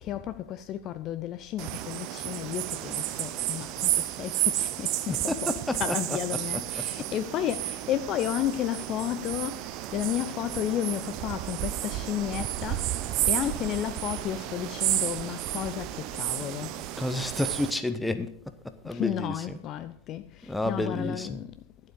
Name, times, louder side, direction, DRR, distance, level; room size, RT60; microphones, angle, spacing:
voice 1, 0.0-5.5 5.8-12.9 13.3-16.8 18.8-21.6, left 11 dB, 35° left, 0.5 m, -32 dB
sound 1, 1.6-17.7, right 14 dB, 40° right, 0.7 m, -32 dB
voice 2, 5.1-6.9 16.4-16.5 17.0-18.4 18.6-19.6 20.4-21.4, left 2 dB, 5° left, 1.0 m, -31 dB
12.0 x 7.8 x 5.1 m
figure-of-eight pair, 90°, 0 cm